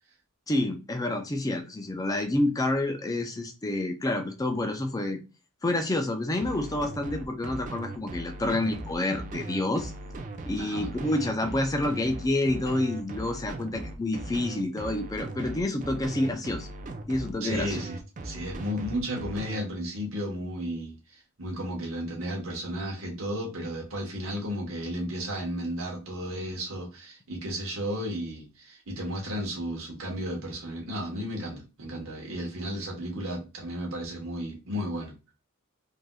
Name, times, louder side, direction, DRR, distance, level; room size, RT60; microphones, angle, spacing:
voice 1, 0.5-5.2 5.6-9.9 10.5-16.7 17.1-17.8, left 1 dB, 15° left, 0.4 m, -28 dB
sound 1, 6.4-19.6, right 2 dB, 40° right, 0.4 m, -38 dB
voice 2, 10.6-10.9 17.4-18.0 18.2-35.1, equal, 75° right, 1.0 m, -34 dB
3.3 x 2.6 x 2.2 m
head